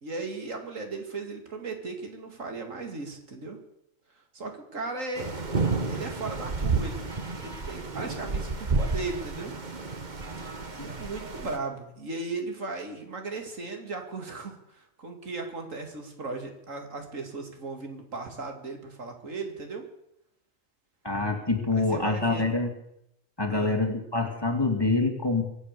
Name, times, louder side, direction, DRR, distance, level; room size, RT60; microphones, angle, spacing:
voice 1, 0.0-3.6 4.3-5.3 5.9-7.0 7.4-9.5 10.7-19.8 21.7-22.5 23.5-23.8, right 3 dB, 75° right, 4 dB, 2.7 m, -37 dB
sound 1, 5.2-11.6, right 4 dB, 35° right, 1.4 m, -31 dB
voice 2, 21.0-22.7 23.4-25.4, left 3 dB, 20° left, 2 dB, 2.0 m, -26 dB
23.5 x 8.5 x 6.7 m, 0.81 s
omnidirectional pair, 1.4 m